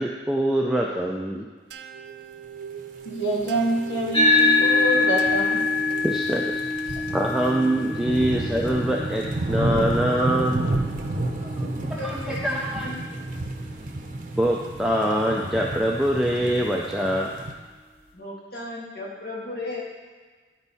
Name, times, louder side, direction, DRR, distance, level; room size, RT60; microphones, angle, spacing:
voice 1, 0.0-1.5 6.0-6.6 7.1-10.6 11.9-12.9 14.4-17.3, right 1 dB, ahead, -2 dB, 0.4 m, -24 dB
sound 1, 1.7-6.5, right 8 dB, 80° right, 0.5 m, -39 dB
voice 2, 3.0-5.6 6.9-7.0, right 1 dB, 80° left, -2 dB, 1.2 m, -26 dB
sound 2, 3.2-17.5, right 2 dB, 45° right, 0.7 m, -31 dB
sound 3, 4.1-12.9, left 3 dB, 30° left, 1.3 m, -25 dB
voice 3, 11.2-13.0 18.1-19.8, left 2 dB, 55° left, -5 dB, 2.0 m, -36 dB
10.5 x 4.5 x 4.1 m, 1.4 s
head